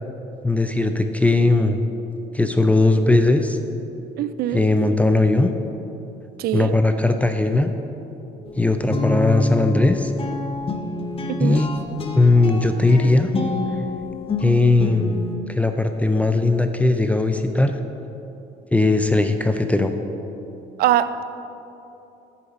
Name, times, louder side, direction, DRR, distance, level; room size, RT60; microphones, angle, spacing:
voice 1, 0.4-1.8 2.3-3.6 4.5-5.5 6.5-7.7 8.6-10.1 11.4-11.7 12.1-13.3 14.4-15.2 15.5-17.8 18.7-19.9, left 2 dB, 10° left, 7 dB, 0.4 m, -18 dB
voice 2, 4.2-4.7 6.4-6.7 11.4-11.6 20.8-21.2, right 12 dB, 65° right, 13 dB, 0.4 m, -22 dB
sound 1, 8.4-15.4, left 3 dB, 35° left, 0.9 m, -27 dB
9.2 x 7.0 x 5.0 m, 3.0 s
cardioid pair, 110°, 17 cm